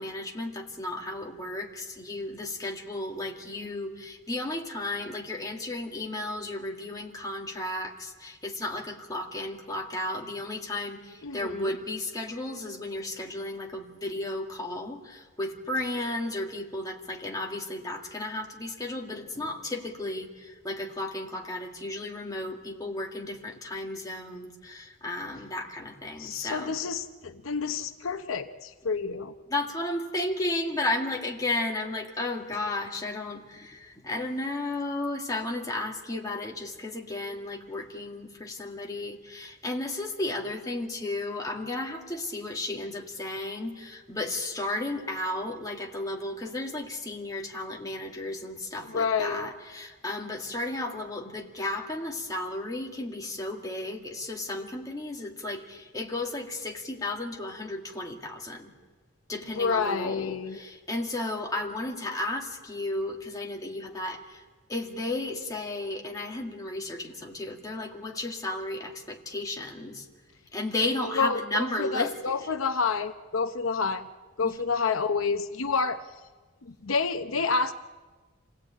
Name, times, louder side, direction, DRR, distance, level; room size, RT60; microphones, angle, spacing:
voice 1, 0.0-26.7 29.5-58.7 59.3-64.4 64.7-70.1 70.5-72.1 74.4-74.5, left 2 dB, 20° left, 0 dB, 2.1 m, -34 dB
voice 2, 11.2-11.7 26.2-29.3 48.8-49.5 59.5-60.6 71.2-74.1 74.4-76.0 76.6-77.7, left 5 dB, 80° left, 9 dB, 0.8 m, -29 dB
26.5 x 17.5 x 9.0 m, 1.4 s
head